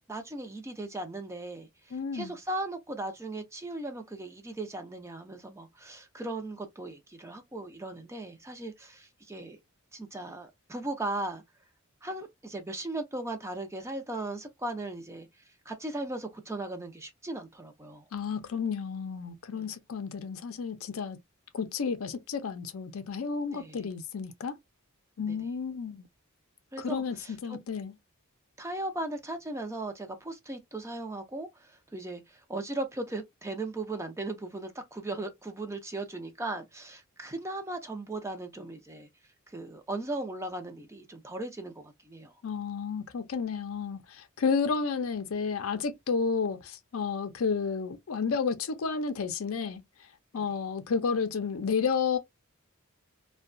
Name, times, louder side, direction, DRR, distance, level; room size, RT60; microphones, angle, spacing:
voice 1, 0.1-9.6 9.9-11.4 12.0-15.3 15.7-18.0 19.6-19.7 23.5-23.8 25.3-25.4 26.7-27.6 28.6-39.1 39.5-42.3 50.3-50.4, right 2 dB, 15° right, 0.5 m, -37 dB
voice 2, 1.9-2.4 18.1-21.2 21.5-24.6 25.2-26.1 26.8-27.9 42.4-49.8 50.3-52.2, left 5 dB, 70° left, 0.5 m, -31 dB
2.7 x 2.2 x 2.5 m
head